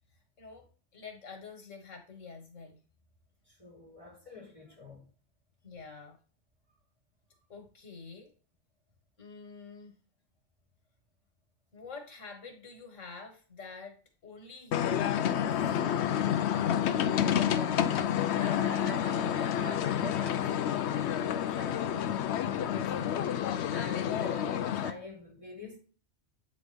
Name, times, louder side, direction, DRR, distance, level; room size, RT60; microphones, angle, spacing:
voice 1, 0.1-0.7 0.9-2.8 5.6-6.2 7.5-8.3 9.2-9.9 11.7-15.8, left 4 dB, 85° left, 1.9 m, -48 dB
voice 2, 3.5-5.1 17.2-18.0 18.4-23.4 23.7-25.8, left 2 dB, 25° right, 4.1 m, -45 dB
sound 1, 14.7-24.9, left 9 dB, 70° left, 0.8 m, -29 dB
8.4 x 3.8 x 3.4 m
omnidirectional pair, 1.3 m